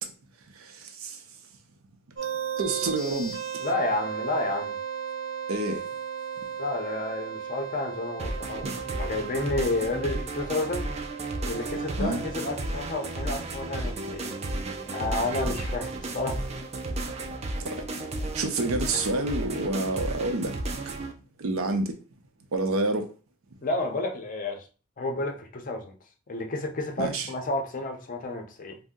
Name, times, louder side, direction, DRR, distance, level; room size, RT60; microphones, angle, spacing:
voice 1, 0.6-1.2 2.6-3.4 5.5-5.8 8.6-8.7 12.0-12.2 17.6-17.9 18.3-20.6 21.4-22.0 22.5-23.1 27.0-27.3, right 2 dB, 90° right, 0.5 m, -28 dB
sound 1, 2.1-15.6, right 7 dB, 60° right, 0.9 m, -37 dB
voice 2, 3.6-4.8 6.6-10.9 11.4-14.3 14.9-16.4 23.6-24.7 25.0-25.9 26.3-28.7, left 2 dB, 40° left, 0.5 m, -31 dB
sound 2, 8.2-21.1, right 2 dB, 30° right, 0.4 m, -33 dB
2.6 x 2.0 x 3.6 m
head